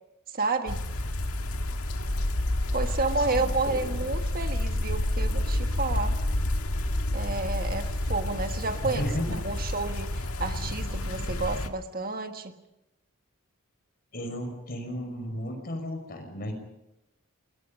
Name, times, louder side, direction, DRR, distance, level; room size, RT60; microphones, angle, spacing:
voice 1, 0.3-0.8 2.7-6.2 7.1-9.1 9.4-12.6, right 3 dB, 45° right, 6 dB, 1.5 m, -30 dB
sound 1, 0.7-11.7, left 1 dB, 90° left, 1.8 m, -29 dB
voice 2, 3.2-4.0 8.9-9.4 14.1-16.5, equal, 45° left, 5 dB, 5.9 m, -34 dB
29.0 x 21.5 x 5.4 m, 0.89 s
head